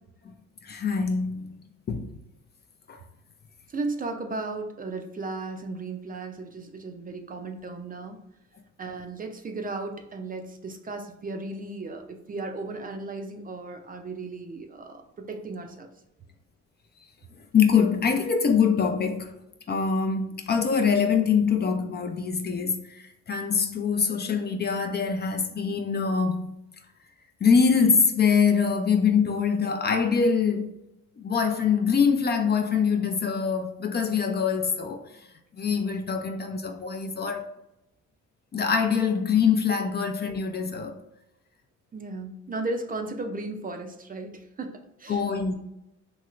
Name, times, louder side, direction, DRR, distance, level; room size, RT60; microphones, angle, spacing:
voice 1, 0.6-1.5 1.9-2.1 2.9-3.0 17.5-19.3 19.7-26.5 27.4-30.8 31.2-35.1 35.5-37.5 38.5-41.0 45.1-45.5, left 6 dB, 35° left, 0.4 m, -24 dB
voice 2, 3.7-8.2 8.8-15.9 41.9-45.2, right 3 dB, 30° right, 0.4 m, -35 dB
3.1 x 2.9 x 2.4 m
cardioid pair, 90°, 30 cm